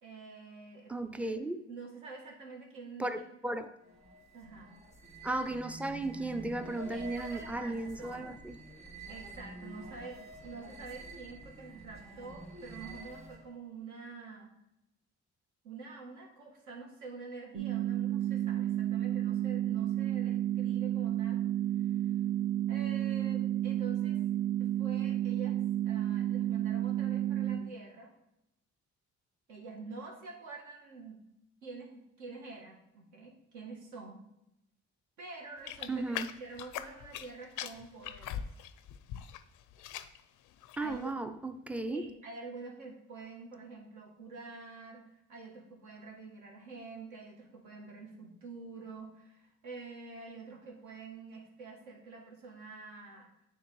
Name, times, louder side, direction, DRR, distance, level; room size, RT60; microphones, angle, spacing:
voice 1, 0.0-0.9 1.2-1.3 1.7-3.1 4.3-4.8 6.9-8.3 9.1-14.5 15.6-21.4 21.8-22.2 22.7-24.2 24.6-28.1 29.5-31.2 31.6-34.2 35.2-38.4 40.8-41.1 41.9-53.3, right 4 dB, 80° right, 1.6 m, -47 dB
voice 2, 0.9-1.6 3.0-3.7 5.2-8.6 35.9-36.3 40.8-42.1, right 2 dB, 5° right, 0.4 m, -35 dB
sound 1, 3.8-13.6, right 1 dB, 20° right, 1.4 m, -48 dB
sound 2, 17.5-27.6, right 12 dB, 60° right, 2.0 m, -31 dB
sound 3, 35.7-37.3 37.6-39.4 39.7-40.2 40.6-41.0, left 10 dB, 85° left, 0.4 m, -40 dB
9.2 x 3.6 x 3.1 m
cardioid pair, 90°, 30 cm